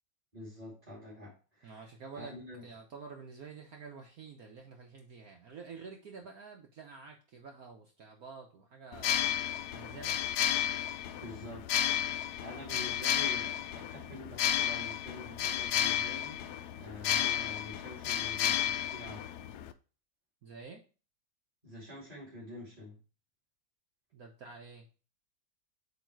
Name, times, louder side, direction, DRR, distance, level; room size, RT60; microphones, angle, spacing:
voice 1, 0.3-1.8 2.2-2.7 11.2-11.7 12.4-16.4 16.8-19.3 21.6-23.0, left 1 dB, 20° right, 2.7 m, -46 dB
voice 2, 1.6-2.4 2.6-9.2 9.7-10.2 20.4-20.8 24.1-24.9, right 5 dB, 60° right, 1.1 m, -49 dB
sound 1, 8.9-19.7, left 11 dB, 80° left, 0.8 m, -32 dB
8.3 x 3.2 x 4.6 m
omnidirectional pair, 2.2 m